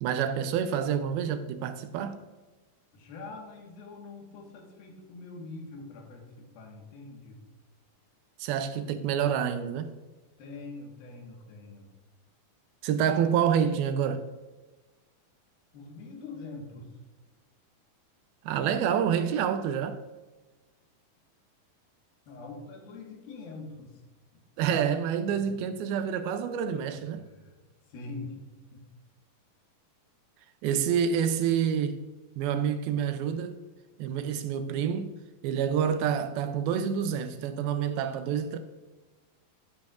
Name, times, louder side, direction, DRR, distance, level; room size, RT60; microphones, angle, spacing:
voice 1, 0.0-2.2 8.4-9.9 12.8-14.2 18.4-20.0 24.6-27.3 30.6-32.1 32.4-33.6 34.0-35.2 35.4-38.6, right 8 dB, 80° right, 2.5 m, -28 dB
voice 2, 2.9-7.4 10.4-11.9 15.7-17.0 22.3-24.0 24.3-24.4 25.3-25.6 27.0-27.6 27.9-28.9, left 3 dB, 75° left, 3.3 m, -44 dB
11.5 x 10.5 x 2.5 m
omnidirectional pair, 4.3 m